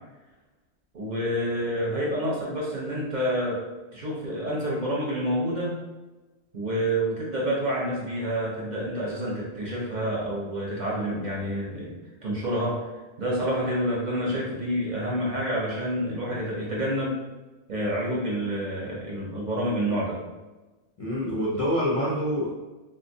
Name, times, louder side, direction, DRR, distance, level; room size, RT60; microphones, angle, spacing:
voice 1, 0.9-3.6 3.9-5.8 6.5-11.9 12.2-12.9 13.2-17.2 17.7-20.2, equal, 45° right, -4 dB, 0.7 m, -28 dB
voice 2, 21.0-22.5, equal, 45° left, -6 dB, 0.5 m, -26 dB
3.8 x 2.3 x 2.6 m, 1.2 s
omnidirectional pair, 1.2 m